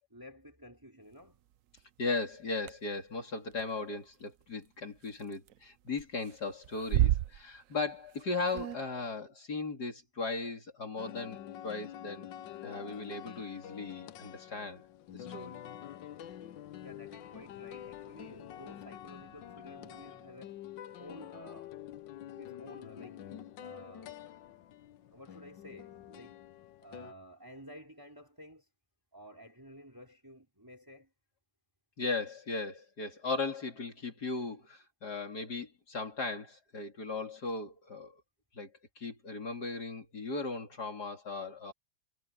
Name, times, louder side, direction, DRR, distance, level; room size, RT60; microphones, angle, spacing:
voice 1, 0.1-1.4 16.8-20.6 21.0-23.3 23.6-24.5 25.0-26.4 26.8-28.7 29.1-31.1, equal, 10° right, 3.8 m, -52 dB
sound 1, 1.8-1.9 2.7-2.8 3.5-3.6 5.1-5.6 5.9-6.4 6.6-7.9 8.2-8.3 8.5-8.8, right 13 dB, 85° right, 0.7 m, -30 dB
voice 2, 2.0-12.3 12.6-14.9 15.1-15.6 32.0-38.2 38.5-38.7 39.0-41.7, left 3 dB, 55° left, 3.5 m, -37 dB
sound 2, 11.0-27.1, left 11 dB, 75° left, 1.5 m, -47 dB
omnidirectional pair, 2.0 m